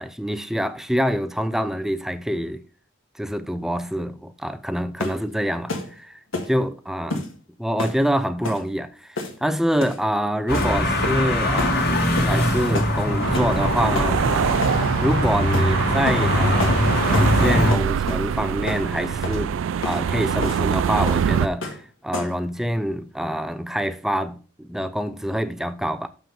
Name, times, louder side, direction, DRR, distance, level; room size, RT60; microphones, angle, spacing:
voice 1, 0.0-2.6 3.2-7.3 7.6-14.2 15.0-19.6 19.8-26.1, equal, ahead, 0.4 m, -26 dB
sound 1, 5.0-5.2 5.7-5.9 6.3-6.5 7.1-7.3 7.8-8.0 8.4-8.6 9.2-9.5 9.8-10.0 10.5-10.7 11.0-11.3 11.6-11.8 12.2-12.4 12.7-12.9 13.3-13.6 13.9-14.1 14.6-14.8 15.5-15.7 16.1-16.3 16.6-16.8 17.1-17.3 17.7-18.3 18.7-18.9 19.2-19.4 19.8-20.0 20.4-20.6 21.1-21.3 21.6-21.8 22.1-22.4, left 2 dB, 90° left, 1.8 m, -29 dB
sound 2, 10.5-17.7, left 1 dB, 50° left, 1.9 m, -22 dB
sound 3, 13.2-21.5, right 7 dB, 75° right, 0.3 m, -24 dB
7.0 x 5.8 x 5.5 m
head